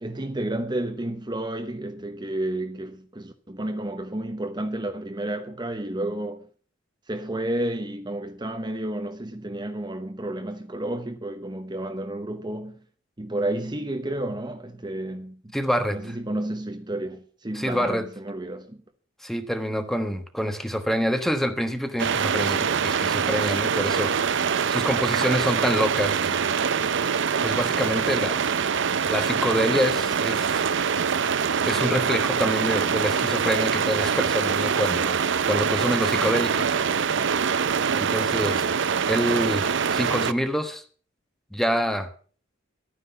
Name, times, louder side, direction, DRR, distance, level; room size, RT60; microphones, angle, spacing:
voice 1, 0.0-6.5 7.1-12.8 13.2-15.6 15.9-18.8, right 1 dB, 20° right, 0.9 m, -31 dB
voice 2, 15.5-16.2 17.5-18.1 19.2-26.5 27.4-28.4 29.1-30.6 31.6-35.2 35.5-36.8 38.0-38.7 39.1-40.8 41.5-42.1, equal, ahead, 1.2 m, -26 dB
sound 1, 22.0-40.3, right 6 dB, 65° right, 0.6 m, -24 dB
12.0 x 9.7 x 6.8 m
head